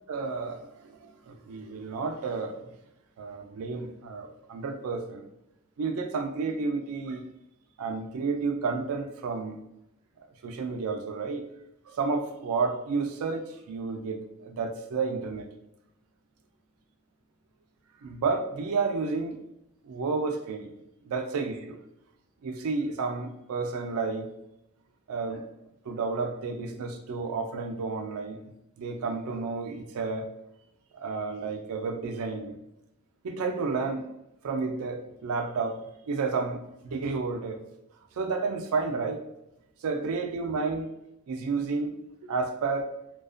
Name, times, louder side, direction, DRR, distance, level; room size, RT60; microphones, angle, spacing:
voice 1, 0.1-2.7 3.2-5.3 5.8-7.2 7.8-9.6 10.4-11.4 11.9-15.5 18.0-19.4 19.8-20.7 21.0-21.8 22.4-24.2 25.1-25.5 25.9-28.4 28.8-30.3 30.9-32.6 33.2-34.1 34.4-37.6 38.2-39.2 39.8-40.9 41.3-41.9 42.2-42.9, right 4 dB, 80° right, 4 dB, 0.4 m, -31 dB
2.4 x 2.2 x 2.4 m, 0.86 s
head